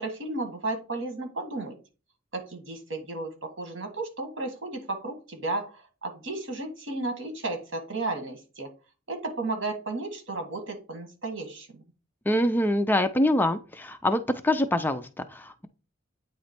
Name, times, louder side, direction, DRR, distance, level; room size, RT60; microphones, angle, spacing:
voice 1, 0.0-1.7 2.3-8.7 9.1-11.8, right 2 dB, 70° right, 4 dB, 1.7 m, -33 dB
voice 2, 12.3-15.7, left 1 dB, 10° left, 9 dB, 0.4 m, -25 dB
8.7 x 3.1 x 4.4 m, 0.33 s
head